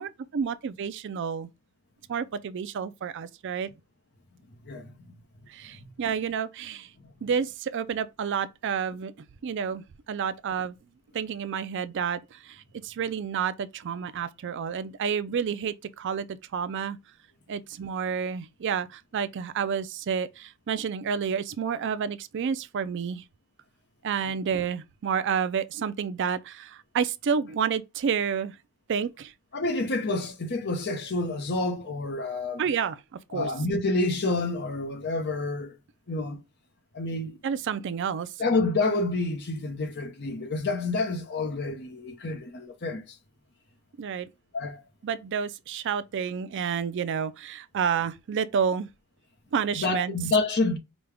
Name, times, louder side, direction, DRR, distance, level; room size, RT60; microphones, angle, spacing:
voice 1, 0.0-1.5 2.1-3.7 5.5-6.9 7.2-9.1 9.4-10.8 11.1-17.0 17.5-23.2 24.0-28.6 28.9-29.3 32.6-33.5 37.4-38.3 44.0-44.3 45.0-48.9 49.5-50.1, right 7 dB, 55° right, 0.4 m, -30 dB
voice 2, 29.5-32.6 33.3-35.7 36.1-36.4 36.9-37.4 38.4-43.0 44.5-44.8 49.7-50.8, left 3 dB, 50° left, 0.8 m, -28 dB
5.1 x 2.3 x 3.4 m
head